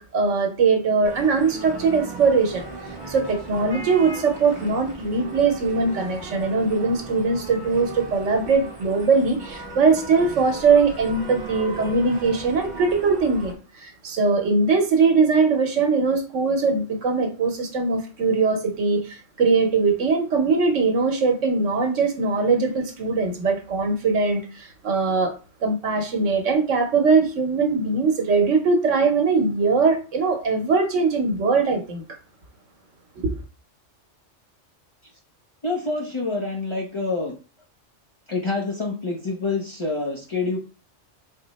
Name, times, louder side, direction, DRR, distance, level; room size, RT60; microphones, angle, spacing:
voice 1, 0.0-2.6 3.1-25.3 25.6-32.0, right 4 dB, 85° right, 1.2 m, -21 dB
sound 1, 1.0-13.5, right 3 dB, 45° right, 1.1 m, -37 dB
voice 2, 35.6-37.4 38.3-40.6, left 3 dB, 35° left, 0.6 m, -27 dB
4.1 x 2.0 x 4.0 m
omnidirectional pair, 1.2 m